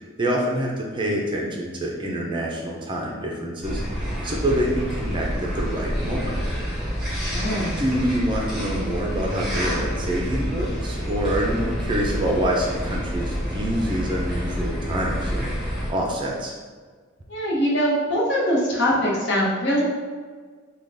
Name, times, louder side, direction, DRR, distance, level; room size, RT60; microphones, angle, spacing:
voice 1, 0.2-3.8 4.2-6.3 7.6-15.6 15.9-16.5, right 1 dB, 25° right, -1 dB, 0.4 m, -26 dB
sound 1, 3.6-15.9, equal, ahead, 0.9 m, -28 dB
voice 2, 7.1-7.8 17.3-19.8, equal, 60° left, -5 dB, 0.9 m, -22 dB
3.7 x 2.3 x 3.3 m, 1.5 s
head